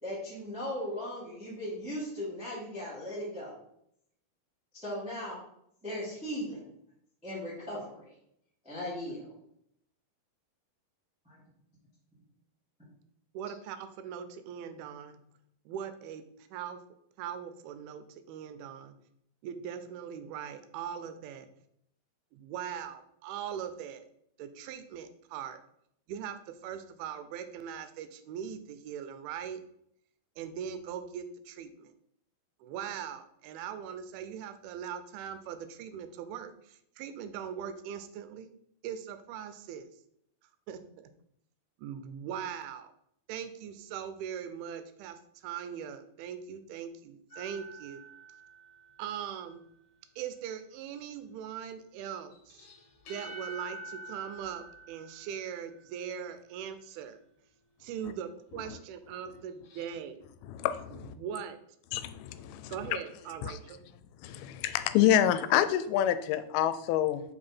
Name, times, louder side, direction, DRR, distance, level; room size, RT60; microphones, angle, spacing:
voice 1, 0.0-3.5 4.7-5.4 5.8-6.7 7.2-8.1 8.6-9.3 11.2-11.4, equal, 5° right, -8 dB, 1.0 m, -38 dB
voice 2, 13.3-15.2 15.7-16.3 16.5-16.8 17.2-19.0 19.4-21.5 22.3-24.1 24.4-25.6 26.1-29.6 30.4-31.9 32.6-38.5 38.8-39.9 40.7-41.1 41.8-42.9 43.3-48.0 49.0-49.7 50.2-52.7 53.1-57.2 57.8-60.2 60.9-61.6 62.7-63.8, right 8 dB, 85° right, 10 dB, 2.5 m, -40 dB
sound 1, 47.3-49.3 52.3-55.9 59.5-60.0, right 2 dB, 60° left, 2.4 m, -48 dB
voice 3, 60.5-61.1 61.9-62.7 63.5-63.6 64.2-67.2, left 11 dB, 85° left, 12 dB, 2.4 m, -27 dB
5.6 x 4.8 x 4.3 m, 0.73 s
omnidirectional pair, 4.4 m